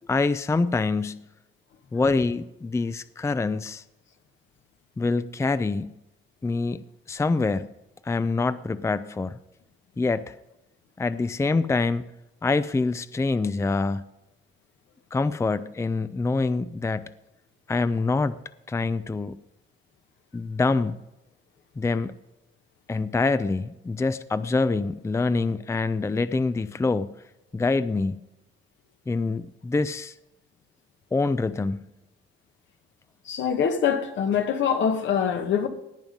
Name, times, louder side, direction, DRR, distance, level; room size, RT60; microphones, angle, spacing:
voice 1, 0.1-1.2 1.9-3.8 5.0-5.9 6.4-6.8 7.1-7.7 8.0-9.4 10.0-10.4 11.0-12.1 12.4-14.0 15.1-17.1 17.7-18.4 18.7-19.4 20.3-21.0 21.8-22.1 22.9-27.1 27.5-28.2 29.1-30.1 31.1-31.8, left 3 dB, 15° left, 0.5 m, -25 dB
voice 2, 33.2-35.7, left 7 dB, 70° left, 1.5 m, -24 dB
18.0 x 9.1 x 5.3 m
cardioid pair, 90°, 20 cm